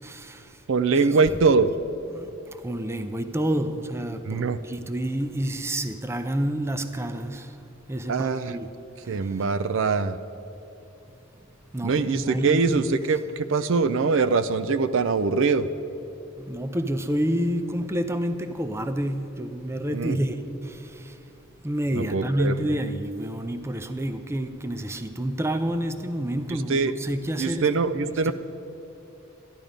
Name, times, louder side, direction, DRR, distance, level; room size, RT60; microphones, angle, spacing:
voice 1, 0.0-0.6 2.1-7.6 7.9-8.7 9.0-9.1 11.7-12.9 16.4-21.2 21.6-27.7 28.0-28.3, right 1 dB, 15° right, 0.5 m, -29 dB
voice 2, 0.7-1.7 4.2-4.6 8.1-8.6 9.1-10.2 11.8-15.7 19.9-20.2 21.9-22.8 26.5-26.9 27.4-28.3, right 4 dB, 65° right, 0.5 m, -23 dB
13.5 x 11.0 x 5.1 m
head